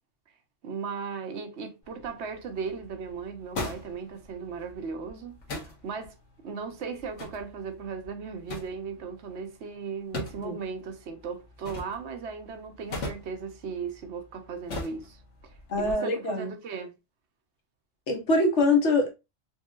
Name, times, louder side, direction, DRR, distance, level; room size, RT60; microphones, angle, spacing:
voice 1, 0.6-6.1 6.4-16.9, right 5 dB, 70° right, 1.0 m, -37 dB
sound 1, 1.8-15.9, left 2 dB, 90° left, 1.5 m, -42 dB
voice 2, 15.7-16.5 18.1-19.1, left 2 dB, 70° left, 1.3 m, -24 dB
4.4 x 2.7 x 2.3 m
omnidirectional pair, 1.2 m